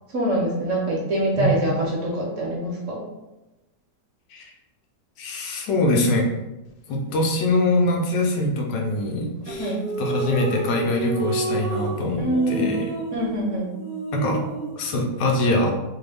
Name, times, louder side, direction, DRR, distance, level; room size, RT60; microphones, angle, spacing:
voice 1, 0.1-3.0 9.5-9.8 12.2-12.8 13.1-13.7, right 1 dB, 55° right, -4 dB, 1.0 m, -24 dB
voice 2, 5.2-6.3 6.9-12.9 14.1-14.4 14.8-15.7, left 2 dB, 80° left, 1 dB, 1.2 m, -23 dB
sound 1, 9.5-14.8, right 3 dB, 30° right, 0.7 m, -30 dB
3.1 x 2.2 x 3.3 m, 1.0 s
omnidirectional pair, 1.8 m